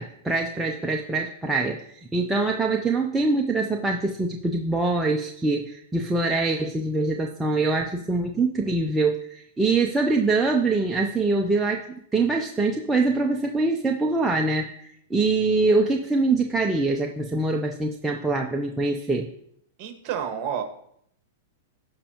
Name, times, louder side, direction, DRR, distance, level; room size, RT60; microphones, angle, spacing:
voice 1, 0.0-11.8 12.1-19.3, right 3 dB, 10° right, 0 dB, 0.5 m, -24 dB
voice 2, 19.8-20.6, right 8 dB, 40° right, 6 dB, 1.5 m, -29 dB
15.5 x 5.4 x 2.9 m, 0.68 s
hypercardioid pair, 145°, 0 cm